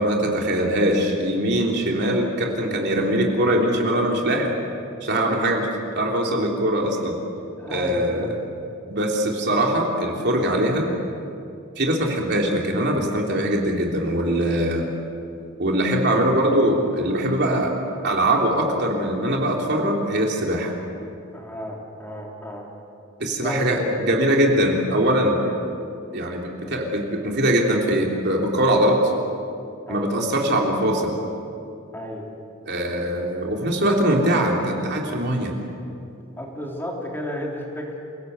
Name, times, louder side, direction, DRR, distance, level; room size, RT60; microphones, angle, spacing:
voice 1, 0.0-4.5 5.0-5.7 5.9-7.1 7.7-8.3 8.9-10.9 11.8-14.8 15.6-17.7 18.0-20.7 23.2-25.4 26.1-29.0 29.9-31.2 32.7-35.5, right 1 dB, 50° right, 0 dB, 3.3 m, -22 dB
voice 2, 5.1-5.5 7.6-8.4 21.3-22.7 23.4-23.9 25.4-25.6 29.8-30.1 31.9-32.3 36.3-37.9, equal, 10° left, -2 dB, 3.6 m, -33 dB
28.0 x 18.0 x 8.1 m, 2.6 s
head